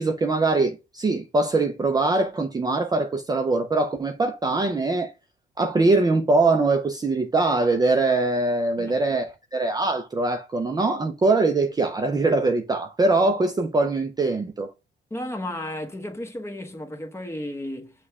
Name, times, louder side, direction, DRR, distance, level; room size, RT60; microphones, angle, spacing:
voice 1, 0.0-5.1 5.6-14.7, right 3 dB, 20° right, 0.5 m, -22 dB
voice 2, 15.1-17.9, left 1 dB, 15° left, 1.1 m, -33 dB
6.2 x 2.3 x 3.5 m
cardioid pair, 90°, 20 cm